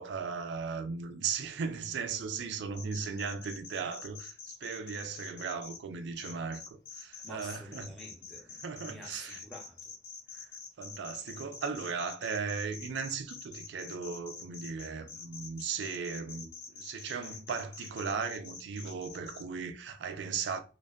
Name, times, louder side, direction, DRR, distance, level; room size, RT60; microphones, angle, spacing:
voice 1, 0.0-4.3 4.6-7.9 8.6-9.4 10.3-10.5 10.8-20.6, right 5 dB, 85° right, 0.3 m, -37 dB
sound 1, 2.7-5.8 6.2-19.4, left 6 dB, 90° left, 0.6 m, -46 dB
voice 2, 7.2-9.9, equal, ahead, 0.6 m, -50 dB
2.5 x 2.2 x 2.2 m
head